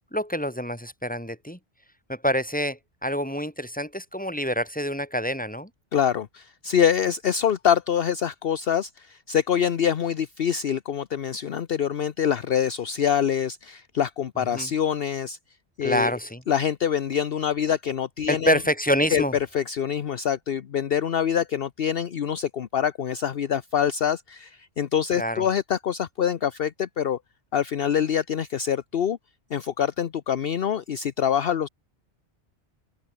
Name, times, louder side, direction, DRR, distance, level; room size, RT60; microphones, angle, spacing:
voice 1, 0.1-1.6 2.1-5.7 14.5-14.7 15.8-16.4 18.3-19.3 25.1-25.5, equal, 5° left, 6.8 m, -26 dB
voice 2, 5.9-15.4 15.8-16.1 16.5-18.6 19.1-19.2 19.5-27.2 27.5-29.2 29.5-31.7, left 8 dB, 60° left, 1.0 m, -25 dB
open air
omnidirectional pair, 1.2 m